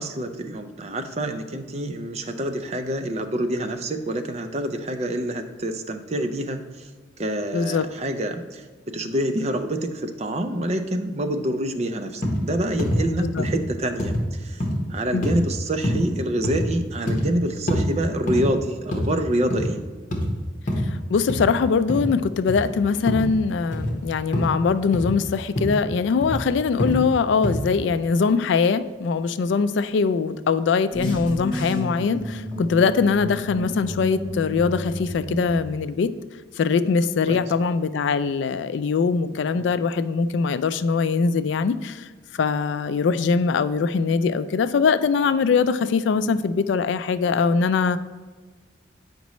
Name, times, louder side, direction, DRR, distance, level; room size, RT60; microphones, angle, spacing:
voice 1, 0.0-6.9 7.2-8.7 8.9-14.6 14.9-19.8 37.3-37.4 39.6-39.7, right 1 dB, 35° right, 7 dB, 0.5 m, -27 dB
voice 2, 7.5-7.8 13.2-13.5 15.1-15.3 20.8-36.1 36.6-48.0, left 5 dB, 65° left, 13 dB, 0.3 m, -22 dB
sound 1, 12.2-12.4 12.8-13.0 13.4-13.6 14.0-14.2 14.6-14.8 15.2-15.4 15.8-16.1 16.4-16.7 17.1-17.3 17.7-17.8 18.3-18.5 18.9-19.1 19.4-19.7 20.1-20.3 20.7-20.9 21.3-21.5 21.9-22.1 22.5-22.7 23.1-23.3 23.7-23.9 24.3-24.5 24.9-25.1 25.6-25.8 26.2-26.4 26.8-27.0 27.4-27.6, equal, 45° left, 1.1 m, -24 dB
sound 2, 30.9-35.7, equal, 25° left, 1.6 m, -32 dB
8.1 x 5.1 x 3.1 m, 1.4 s
head